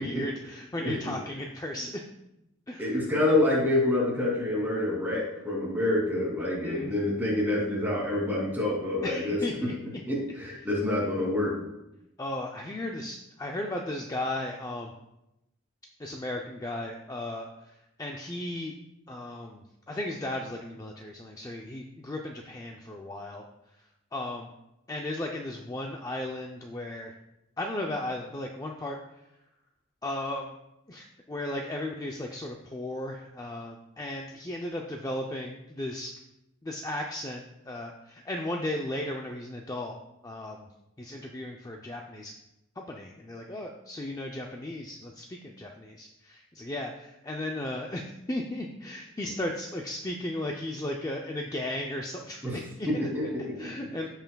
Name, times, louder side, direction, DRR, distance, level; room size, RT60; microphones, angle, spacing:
voice 1, 0.0-1.9 2.7-2.8 6.6-6.9 9.0-9.7 12.2-14.9 16.0-17.5 18.0-18.7 19.1-23.4 24.1-24.5 24.9-27.1 27.6-29.0 30.0-30.5 30.9-36.1 36.6-40.0 40.2-40.7 41.0-42.3 42.8-48.0 48.3-53.1 53.6-54.1, left 1 dB, 15° left, 1 dB, 0.4 m, -35 dB
voice 2, 0.8-1.1 2.8-9.7 10.1-11.5 52.4-52.6 52.9-53.7, left 1 dB, 10° right, -4 dB, 2.6 m, -27 dB
14.5 x 5.7 x 2.3 m, 0.89 s
head